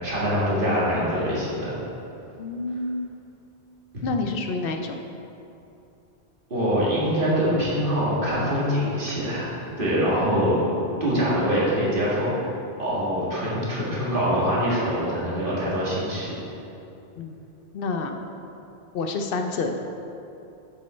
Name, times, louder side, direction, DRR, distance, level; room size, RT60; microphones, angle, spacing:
voice 1, 0.0-1.8 6.5-10.7 11.0-12.3 12.8-16.4, equal, 55° right, -7 dB, 2.0 m, -24 dB
voice 2, 2.4-3.1 4.0-5.0 17.2-17.4 17.7-18.2 18.9-19.8, left 3 dB, 65° left, 4 dB, 0.7 m, -28 dB
7.6 x 5.3 x 4.3 m, 2.8 s
omnidirectional pair, 1.1 m